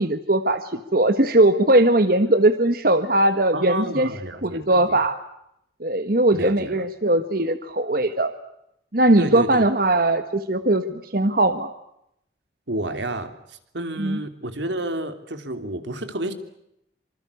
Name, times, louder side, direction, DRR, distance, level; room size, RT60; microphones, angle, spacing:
voice 1, 0.0-4.1 4.4-5.2 5.8-8.3 8.9-11.7 14.0-14.2, right 1 dB, 55° right, 10 dB, 1.4 m, -20 dB
voice 2, 3.5-5.0 6.3-6.8 9.2-9.6 12.7-16.3, right 1 dB, 85° right, 9 dB, 3.1 m, -30 dB
26.5 x 25.5 x 8.3 m, 0.79 s
head